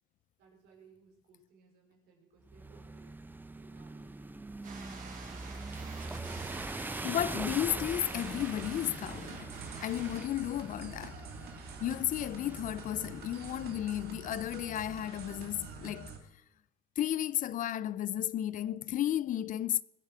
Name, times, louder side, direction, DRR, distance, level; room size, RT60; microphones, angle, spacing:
voice 1, 0.4-3.1 3.5-4.2, right 5 dB, 85° right, 4.9 m, -62 dB
sound 1, 2.5-14.6, right 2 dB, 10° right, 0.7 m, -43 dB
sound 2, 4.6-10.3, right 4 dB, 50° right, 3.6 m, -48 dB
voice 2, 6.9-9.5 9.8-11.2 11.8-16.1 17.0-19.8, left 12 dB, 50° left, 0.5 m, -33 dB
sound 3, 8.1-16.2, right 4 dB, 70° right, 2.5 m, -46 dB
21.0 x 8.5 x 6.2 m
cardioid pair, 110°, 17 cm